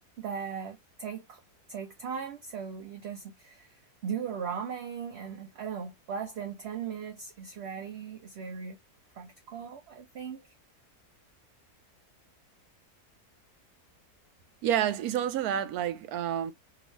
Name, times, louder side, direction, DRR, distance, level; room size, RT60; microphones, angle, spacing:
voice 1, 0.2-1.4 1.7-8.8 9.1-10.5, right 7 dB, 55° right, 0.7 m, -38 dB
voice 2, 14.6-16.5, right 10 dB, 75° right, 1.0 m, -29 dB
2.9 x 2.6 x 3.0 m
omnidirectional pair, 1.7 m